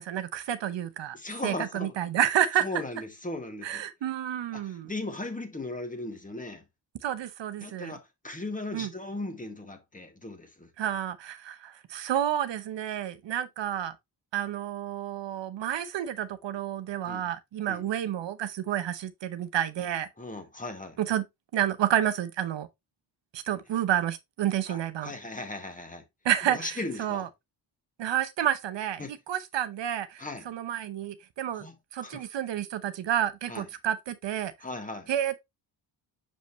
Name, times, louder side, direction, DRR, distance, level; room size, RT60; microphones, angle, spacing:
voice 1, 0.0-1.2 1.4-2.7 3.6-4.9 7.0-7.9 8.7-8.9 10.8-13.9 14.3-20.1 21.0-21.2 21.5-22.7 23.3-25.1 26.2-26.7 27.0-27.3 28.0-31.7 31.9-34.5 35.1-35.4, right 10 dB, 75° right, 0.9 m, -30 dB
voice 2, 1.1-2.0 2.6-3.8 4.5-6.6 7.6-10.7 17.1-17.3 17.7-17.9 20.2-21.0 24.7-26.0 26.4-27.3 29.0-29.1 30.2-30.5 31.5-31.8 32.0-32.3 33.5-33.7 34.6-35.1, left 2 dB, 20° left, 1.7 m, -37 dB
6.6 x 5.2 x 3.1 m
cardioid pair, 105°, 44 cm